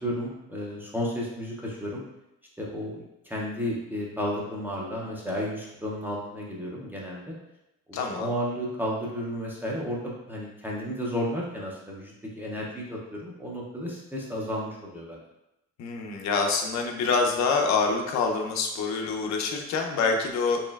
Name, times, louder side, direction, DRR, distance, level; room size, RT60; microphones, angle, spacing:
voice 1, 0.0-2.0 2.6-7.4 7.9-15.2, equal, 5° right, -4 dB, 0.4 m, -33 dB
voice 2, 7.9-8.3 15.8-20.6, left 4 dB, 65° left, 3 dB, 0.6 m, -26 dB
4.2 x 3.1 x 2.3 m, 0.90 s
cardioid pair, 175°, 29 cm